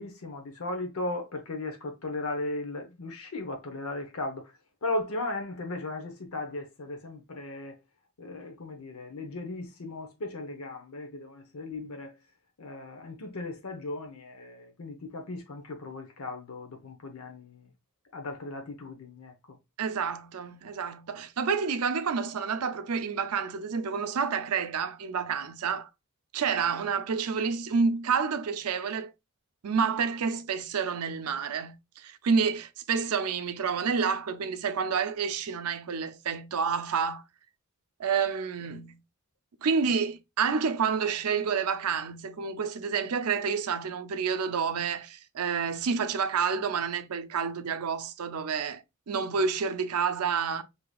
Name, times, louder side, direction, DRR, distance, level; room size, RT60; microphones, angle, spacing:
voice 1, 0.0-4.5 4.8-7.8 8.2-12.1 12.6-17.7 18.1-19.3, left 2 dB, 75° left, 0.7 m, -36 dB
voice 2, 19.8-25.9 26.3-29.1 29.6-37.2 38.0-39.0 39.6-50.6, right 6 dB, 90° right, 0.5 m, -29 dB
4.8 x 2.8 x 2.3 m
head